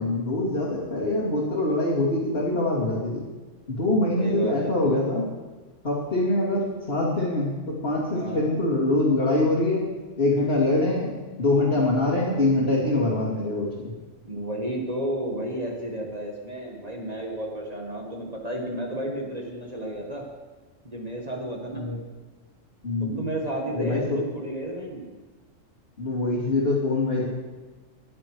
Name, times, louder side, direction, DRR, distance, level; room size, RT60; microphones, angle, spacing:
voice 1, 0.0-3.3 3.7-5.3 5.8-9.9 10.2-13.9 21.7-22.0 22.8-23.2 23.7-24.2 26.0-27.3, left 2 dB, 50° left, -9 dB, 3.1 m, -24 dB
voice 2, 4.2-4.8 8.1-8.5 14.2-20.2 20.8-21.8 23.0-25.1, right 1 dB, 30° right, 0 dB, 1.7 m, -32 dB
21.5 x 7.6 x 4.8 m, 1.3 s
omnidirectional pair, 1.3 m